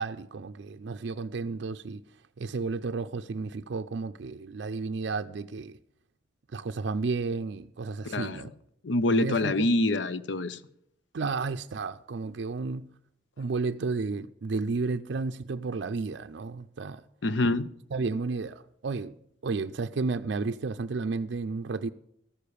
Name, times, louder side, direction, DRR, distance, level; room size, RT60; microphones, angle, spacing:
voice 1, 0.0-2.0 2.4-5.8 6.5-8.5 9.1-9.7 11.1-12.8 13.4-17.0 17.9-19.2 19.4-21.9, right 4 dB, 65° right, 0.4 m, -32 dB
voice 2, 8.0-8.4 8.8-10.6 17.2-17.7, left 2 dB, 70° left, 0.7 m, -26 dB
14.0 x 6.7 x 8.5 m
head